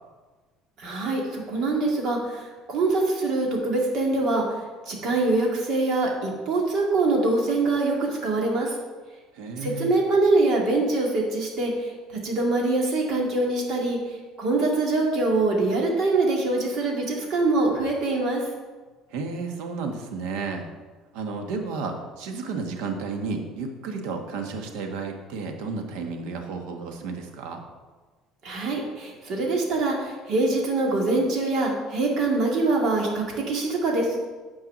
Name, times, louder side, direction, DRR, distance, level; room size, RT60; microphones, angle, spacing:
voice 1, 0.8-4.4 4.9-8.8 9.6-11.9 12.2-18.4 28.4-34.2, right 2 dB, 45° right, -1 dB, 2.1 m, -24 dB
voice 2, 9.3-10.0 19.1-20.7 21.1-27.6, right 4 dB, 85° right, 4 dB, 1.4 m, -32 dB
9.0 x 4.7 x 7.4 m, 1.3 s
cardioid pair, 170°, 0 cm